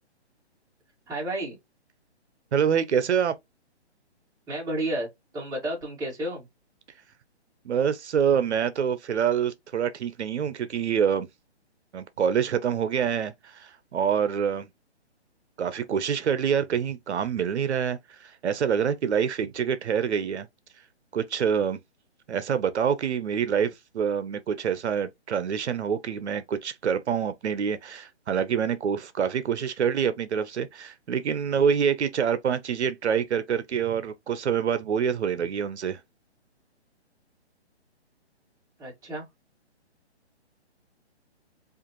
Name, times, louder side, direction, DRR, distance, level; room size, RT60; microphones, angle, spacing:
voice 1, 1.1-1.6 4.5-6.5 38.8-39.3, right 1 dB, 10° right, 2.1 m, -31 dB
voice 2, 2.5-3.3 7.6-11.3 11.9-14.7 15.6-20.5 21.1-21.8 22.3-36.0, right 7 dB, 75° right, 0.6 m, -26 dB
5.0 x 2.5 x 2.9 m
hypercardioid pair, 160°, 34 cm